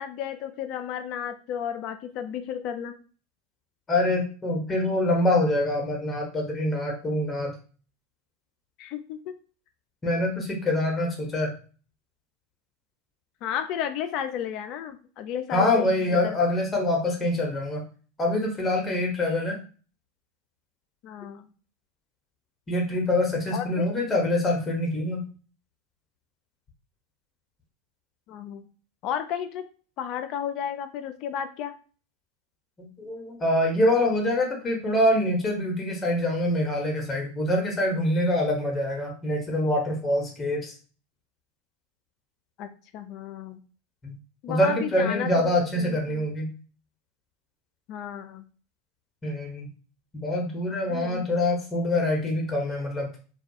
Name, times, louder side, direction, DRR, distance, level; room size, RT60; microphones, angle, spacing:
voice 1, 0.0-2.9 8.8-9.2 13.4-16.4 21.0-21.4 23.5-23.8 28.3-28.7 29.0-29.6 30.0-31.7 42.6-43.6 44.4-45.5 45.8-46.2 47.9-48.4 50.9-51.3, left 9 dB, 50° left, 9 dB, 0.3 m, -33 dB
voice 2, 3.9-7.5 10.0-11.5 15.5-17.8 18.2-19.6 22.7-25.2 32.8-40.7 44.0-44.2 44.5-46.5 49.2-49.7 50.1-53.1, left 1 dB, 25° left, 0 dB, 0.7 m, -25 dB
2.3 x 2.3 x 2.6 m, 0.38 s
hypercardioid pair, 90°, 0 cm